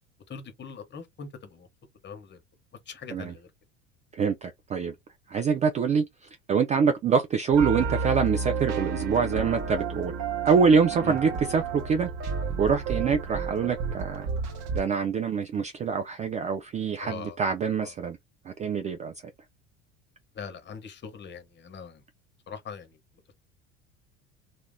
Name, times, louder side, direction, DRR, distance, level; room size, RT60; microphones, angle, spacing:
voice 1, 0.3-1.7 2.0-2.4 2.9-3.5 11.0-11.2 17.0-17.4 17.8-17.9 20.3-22.0 22.5-23.0, left 6 dB, 30° left, 0.9 m, -41 dB
voice 2, 4.2-4.9 5.3-6.0 6.5-10.1 10.4-12.1 12.6-14.3 14.7-18.2 18.5-19.1, right 6 dB, 20° right, 0.3 m, -25 dB
sound 1, 7.5-14.8, right 5 dB, 45° right, 0.9 m, -31 dB
2.8 x 2.1 x 3.5 m
hypercardioid pair, 70°, 38 cm